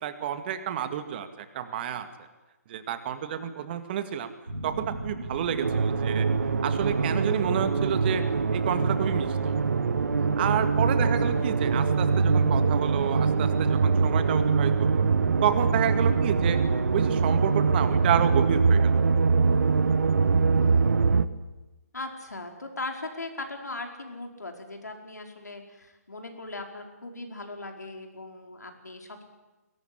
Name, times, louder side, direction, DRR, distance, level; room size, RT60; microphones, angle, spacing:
voice 1, 0.0-2.1 2.7-4.3 4.6-6.3 6.6-8.2 8.5-9.6 10.2-15.0 15.4-16.6 16.9-18.9, right 9 dB, 35° right, 9 dB, 2.1 m, -30 dB
sound 1, 4.5-20.7, right 2 dB, 85° right, 4.4 m, -35 dB
sound 2, 5.6-21.3, right 5 dB, 65° right, 1.3 m, -24 dB
voice 2, 11.0-11.4 20.3-20.9 21.9-29.2, left 2 dB, 80° left, 3 dB, 4.9 m, -39 dB
21.5 x 18.5 x 9.9 m, 1.1 s
figure-of-eight pair, 140°, 9 cm